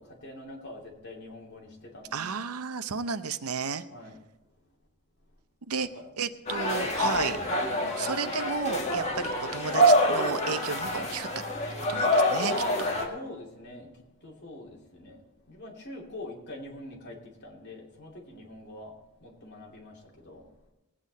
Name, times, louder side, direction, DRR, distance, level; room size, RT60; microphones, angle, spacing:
voice 1, 0.0-2.3 3.9-4.2 5.9-6.0 13.0-20.5, left 1 dB, 50° left, -2 dB, 2.7 m, -45 dB
voice 2, 2.1-3.8 5.7-5.9 6.2-7.4 8.0-11.3 11.9-12.5, right 5 dB, 75° right, 11 dB, 0.7 m, -32 dB
sound 1, 6.5-13.1, equal, 30° left, 1.7 m, -26 dB
19.5 x 8.7 x 4.1 m, 0.95 s
head